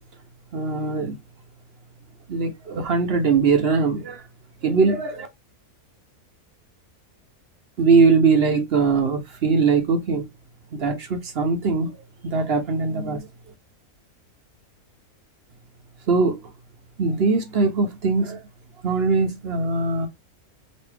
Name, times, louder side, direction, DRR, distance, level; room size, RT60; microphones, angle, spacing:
voice 1, 0.5-1.2 2.3-4.2 4.6-5.3 7.8-10.2 10.7-12.0 12.2-13.3 16.1-16.4 17.0-18.4 18.8-20.1, right 4 dB, 55° right, 0.8 m, -21 dB
3.1 x 2.6 x 3.2 m
omnidirectional pair, 1.5 m